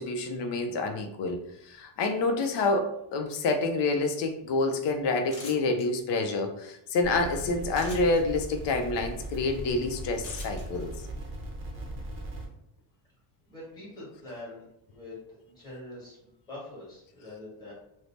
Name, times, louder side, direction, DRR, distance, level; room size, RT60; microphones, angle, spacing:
voice 1, 0.0-10.9, left 3 dB, 60° left, 5 dB, 0.5 m, -28 dB
sound 1, 5.3-5.8 7.7-8.2 10.2-10.6, left 3 dB, 40° left, 1.1 m, -43 dB
sound 2, 7.0-12.5, right 1 dB, 30° right, 0.6 m, -39 dB
voice 2, 13.5-15.2 15.5-17.7, left 2 dB, 10° left, -7 dB, 1.2 m, -44 dB
2.6 x 2.0 x 3.2 m, 0.77 s
cardioid pair, 145°, 47 cm